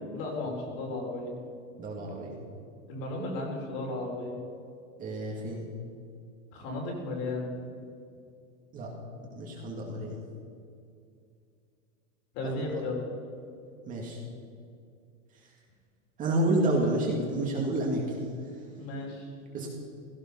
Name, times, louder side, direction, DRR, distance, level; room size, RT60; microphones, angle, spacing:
voice 1, 0.0-1.4 2.9-4.4 6.5-7.5 12.3-13.1 18.7-19.3, left 2 dB, 40° left, 0 dB, 3.9 m, -34 dB
voice 2, 1.8-2.4 5.0-5.6 8.7-8.9 9.4-10.2 12.4-12.8 13.8-14.2 15.4-15.5 16.2-18.2 18.4-18.6 19.5-19.7, right 1 dB, 20° right, -1 dB, 2.0 m, -30 dB
16.5 x 15.5 x 5.5 m, 2.4 s
supercardioid pair, 170°, 42 cm